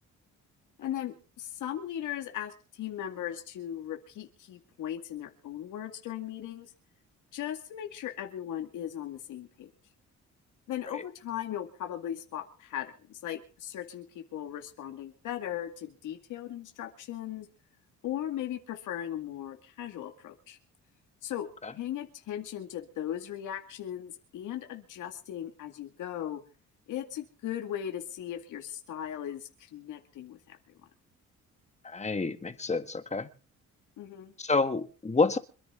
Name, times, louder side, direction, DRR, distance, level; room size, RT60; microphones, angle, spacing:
voice 1, 0.8-6.7 7.3-9.7 10.7-17.5 18.0-20.6 21.2-26.4 26.9-30.6 34.0-34.3, left 11 dB, 80° left, 4 dB, 2.2 m, -38 dB
voice 2, 31.8-33.3 34.4-35.4, left 3 dB, 20° left, 9 dB, 1.7 m, -28 dB
26.5 x 10.5 x 3.8 m, 0.37 s
cardioid pair, 90°, 30 cm